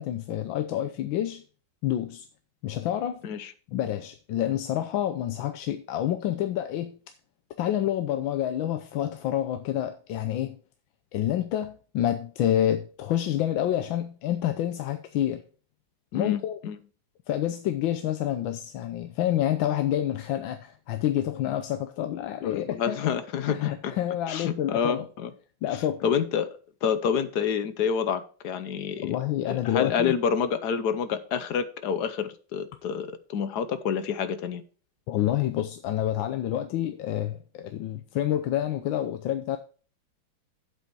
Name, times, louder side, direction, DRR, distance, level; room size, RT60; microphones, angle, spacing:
voice 1, 0.0-1.4 1.8-2.3 2.6-3.2 3.7-7.0 7.6-10.6 11.1-15.4 16.1-16.6 17.3-23.1 23.5-25.1 25.6-26.1 29.0-30.1 35.1-39.6, left 11 dB, 85° left, 1.5 m, -28 dB
voice 2, 16.1-16.8 22.4-23.9 24.3-25.3 26.0-26.5 26.8-29.1 29.4-34.6, left 7 dB, 65° left, 1.3 m, -28 dB
8.3 x 7.9 x 4.7 m
omnidirectional pair, 2.1 m